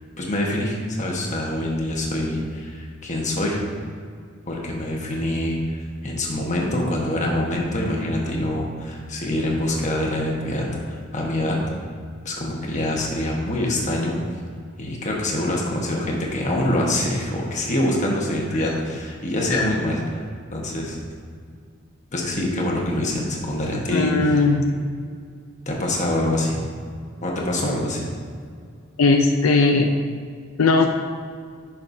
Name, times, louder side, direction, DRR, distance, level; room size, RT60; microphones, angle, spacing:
voice 1, 0.2-3.6 4.5-5.8 6.0-11.6 12.2-14.2 14.8-20.2 20.5-21.0 22.1-24.4 25.7-26.6 27.2-28.1, left 1 dB, 35° left, -2 dB, 1.3 m, -25 dB
voice 2, 23.9-24.6 29.0-30.0 30.6-30.9, left 3 dB, 85° left, 4 dB, 0.5 m, -18 dB
10.5 x 5.9 x 2.7 m, 2.1 s
head